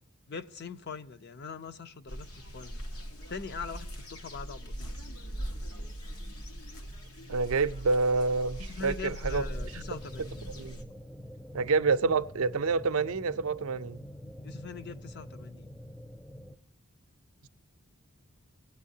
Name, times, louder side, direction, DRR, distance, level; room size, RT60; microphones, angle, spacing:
voice 1, 0.3-2.3 2.5-2.8 3.3-4.9 8.6-10.4 11.9-12.2 14.4-15.7, left 5 dB, 50° left, 0.6 m, -42 dB
sound 1, 2.1-10.8, equal, 90° left, 1.4 m, -42 dB
sound 2, 5.3-10.2, right 1 dB, 70° left, 2.1 m, -45 dB
voice 2, 7.3-9.4 10.6-10.8 11.5-14.0, right 4 dB, 70° right, 0.5 m, -27 dB
sound 3, 9.3-16.6, equal, 5° left, 0.3 m, -46 dB
17.0 x 9.1 x 2.7 m
head